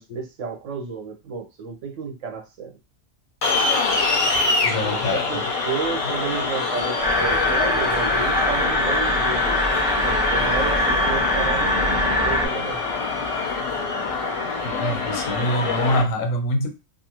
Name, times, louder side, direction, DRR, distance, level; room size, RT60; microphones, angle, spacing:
voice 1, 0.0-2.8 4.9-9.7 9.9-12.9, right 5 dB, 75° right, 1.0 m, -32 dB
sound 1, 3.4-16.0, left 3 dB, 50° left, 0.4 m, -25 dB
voice 2, 4.6-5.4 6.0-6.1 7.6-7.8 14.6-16.7, equal, 90° left, 1.1 m, -25 dB
sound 2, 7.0-12.5, left 1 dB, 5° right, 0.6 m, -22 dB
2.6 x 2.4 x 2.9 m
omnidirectional pair, 1.3 m